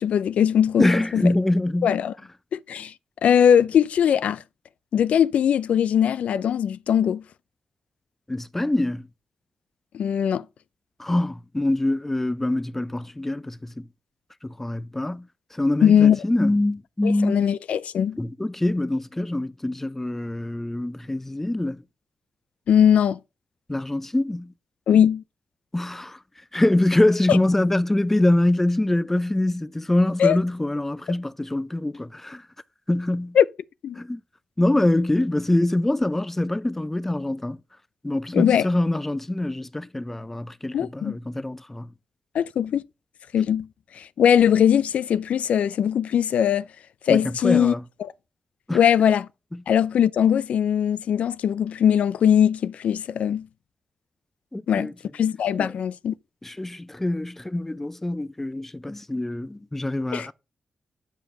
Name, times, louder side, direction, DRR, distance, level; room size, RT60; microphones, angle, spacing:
voice 1, 0.0-1.2 1.8-2.1 2.5-2.9 3.2-4.4 4.9-7.2 9.9-10.4 15.8-16.2 17.0-18.2 22.7-23.2 24.9-25.2 27.3-27.4 30.2-30.4 33.4-33.5 33.8-34.0 38.3-38.7 40.7-41.1 42.3-42.8 43.3-43.7 43.9-46.6 47.1-47.7 48.0-48.1 48.7-49.3 49.7-53.5 54.7-56.1 60.1-60.3, left 8 dB, 80° left, 0.4 m, -20 dB
voice 2, 0.8-2.0 8.3-9.1 11.0-13.9 14.4-17.4 18.2-21.8 23.7-24.5 25.7-26.2 26.5-32.4 32.9-33.4 34.0-34.2 34.6-37.6 38.0-41.9 47.1-47.8 48.7-48.8 54.5-54.9 55.6-55.7 56.4-60.3, left 1 dB, 10° left, 0.5 m, -24 dB
8.9 x 5.2 x 5.5 m
cardioid pair, 100°, 2 cm